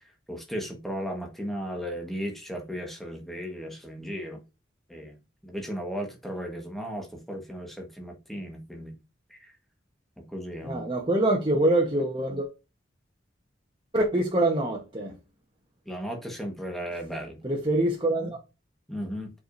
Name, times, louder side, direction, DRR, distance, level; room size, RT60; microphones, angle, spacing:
voice 1, 0.3-4.4 4.9-5.1 5.4-9.0 9.3-9.5 10.2-10.8 15.8-17.4 18.9-19.3, equal, ahead, 1.4 m, -35 dB
voice 2, 10.6-12.5 13.9-15.2 17.4-18.4, right 1 dB, 25° right, 1.2 m, -25 dB
7.8 x 4.9 x 2.7 m
head